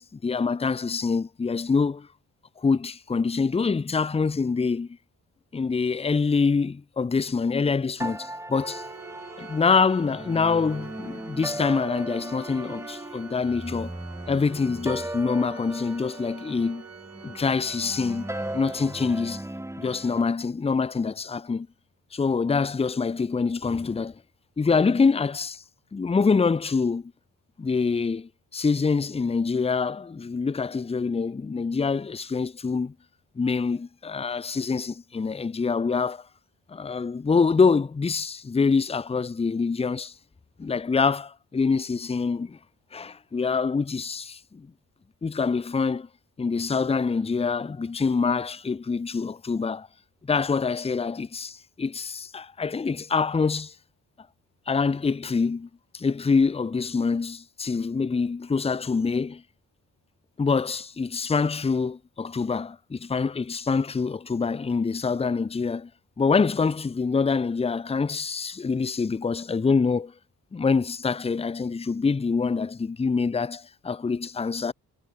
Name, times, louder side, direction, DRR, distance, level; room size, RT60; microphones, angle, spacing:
voice 1, 0.0-2.1 2.6-4.9 5.5-8.8 9.4-13.9 14.3-16.8 17.2-19.4 19.8-21.7 22.1-24.2 24.6-25.6 25.9-27.1 27.6-32.9 33.4-36.3 36.7-40.1 40.6-42.6 42.9-44.7 45.2-46.1 46.4-49.9 50.2-53.7 54.7-55.7 55.9-59.4 60.4-65.9 66.2-70.1 70.5-74.7, left 4 dB, 20° left, 0.6 m, -25 dB
sound 1, 8.0-20.2, right 1 dB, 10° right, 3.1 m, -37 dB
Organ, 8.6-19.3, right 6 dB, 50° right, 4.2 m, -46 dB
cardioid pair, 65°, 34 cm